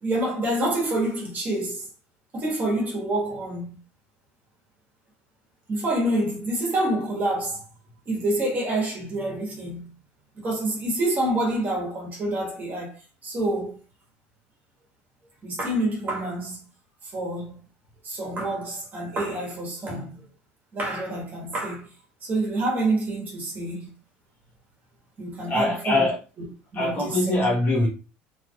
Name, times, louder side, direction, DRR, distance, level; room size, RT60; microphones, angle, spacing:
voice 1, 0.0-1.8 2.3-3.8 5.7-7.6 8.1-9.9 10.4-12.9 13.2-13.8 15.4-16.6 17.1-17.5 18.0-20.1 20.7-21.9 22.2-23.9 25.2-26.1 26.7-27.4, right 1 dB, 35° right, 1.6 m, -27 dB
voice 2, 25.5-26.2 26.7-27.9, left 2 dB, 30° left, 1.4 m, -23 dB
3.4 x 3.2 x 2.4 m
supercardioid pair, 115°, 5 cm